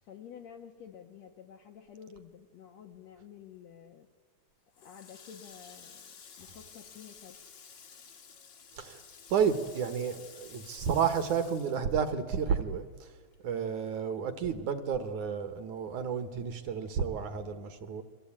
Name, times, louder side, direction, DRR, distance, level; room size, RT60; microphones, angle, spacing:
voice 1, 0.0-4.1 4.8-7.4, left 8 dB, 65° left, 4 dB, 1.9 m, -50 dB
Water tap faucet, 4.7-12.6 12.9-14.2, left 6 dB, 50° left, 1.4 m, -53 dB
voice 2, 9.3-13.1 13.4-18.0, right 7 dB, 60° right, 10 dB, 2.4 m, -31 dB
29.0 x 23.0 x 8.8 m, 1.5 s
omnidirectional pair, 4.2 m